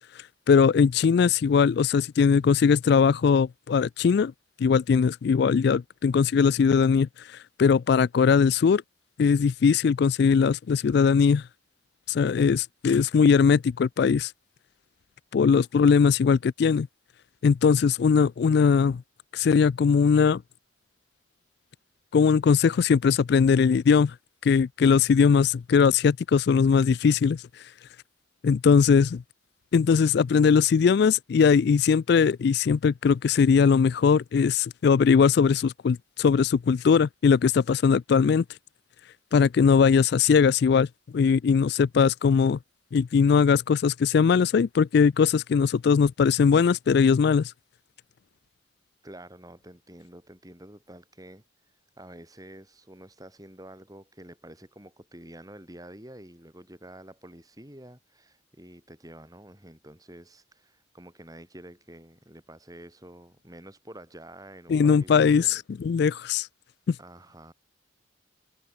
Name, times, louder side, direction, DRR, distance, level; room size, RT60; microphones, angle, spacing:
voice 1, 0.1-4.3 4.6-8.8 9.2-11.5 12.1-14.3 15.3-16.9 17.4-19.0 19.3-20.4 22.1-24.1 24.4-27.6 28.4-29.2 29.7-38.4 39.3-40.9 41.1-42.6 42.9-47.5 64.7-66.5 66.9-67.0, left 6 dB, 55° left, 0.3 m, -20 dB
voice 2, 49.0-51.4 52.0-65.6 67.0-67.5, right 1 dB, 20° right, 6.4 m, -48 dB
head